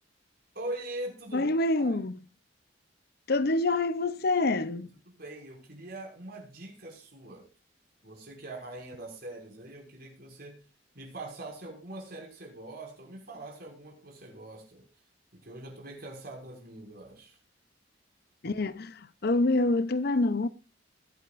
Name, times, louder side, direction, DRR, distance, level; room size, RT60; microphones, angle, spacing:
voice 1, 0.5-1.5 1.8-2.0 5.1-7.4 8.0-10.5 10.9-14.8 15.4-17.4, right 1 dB, 55° right, 5.8 m, -42 dB
voice 2, 1.3-2.2 3.3-4.9 18.4-20.5, left 2 dB, 55° left, 0.7 m, -26 dB
22.0 x 8.6 x 2.5 m
head